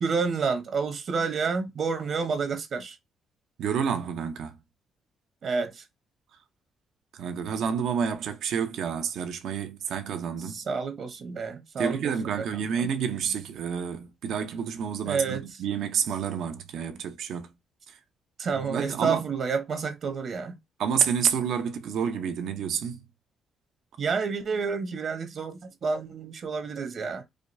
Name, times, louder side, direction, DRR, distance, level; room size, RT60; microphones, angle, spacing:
voice 1, 0.0-3.0 5.4-5.8 10.5-12.9 15.1-15.4 18.4-20.6 24.0-27.2, right 5 dB, 55° right, 1.1 m, -29 dB
voice 2, 3.6-4.6 7.2-10.6 11.8-17.5 18.5-19.2 20.8-23.0, right 7 dB, 75° right, 0.8 m, -29 dB
5.0 x 2.3 x 2.6 m
cardioid pair, 90°, 0 cm